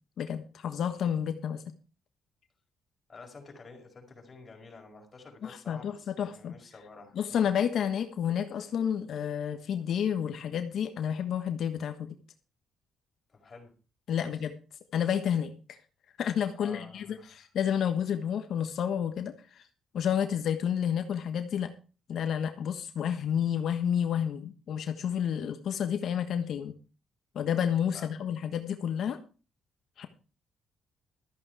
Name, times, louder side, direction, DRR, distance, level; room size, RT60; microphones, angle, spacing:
voice 1, 0.2-1.7 5.4-6.5 7.1-12.2 14.1-14.5 14.9-15.8 16.2-19.6 19.9-21.7 22.1-26.7 27.3-29.2 30.0-30.1, left 8 dB, 65° left, 7 dB, 1.3 m, -30 dB
voice 2, 3.1-7.4 13.3-13.7 14.2-14.3 16.6-17.4 27.9-28.1, left 4 dB, 35° left, 2 dB, 5.4 m, -50 dB
14.0 x 8.7 x 4.8 m, 0.35 s
cardioid pair, 90°, 0 cm